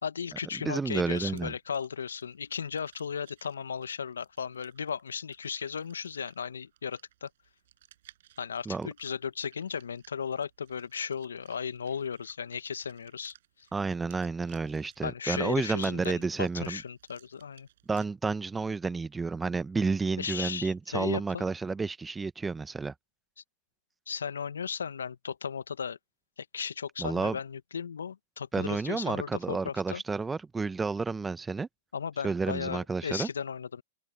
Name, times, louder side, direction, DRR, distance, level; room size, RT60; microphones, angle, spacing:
voice 1, 0.0-7.3 8.4-13.7 15.0-17.7 20.2-21.4 24.1-26.0 26.4-30.0 31.9-33.8, left 7 dB, 80° left, 1.2 m, -36 dB
sound 1, 0.5-18.1, right 13 dB, 65° right, 5.1 m, -61 dB
voice 2, 0.6-1.5 8.7-8.9 13.7-16.8 17.9-22.9 27.0-27.4 28.5-31.7 32.2-33.3, right 4 dB, 10° right, 1.0 m, -31 dB
hypercardioid pair, 105°, 0 cm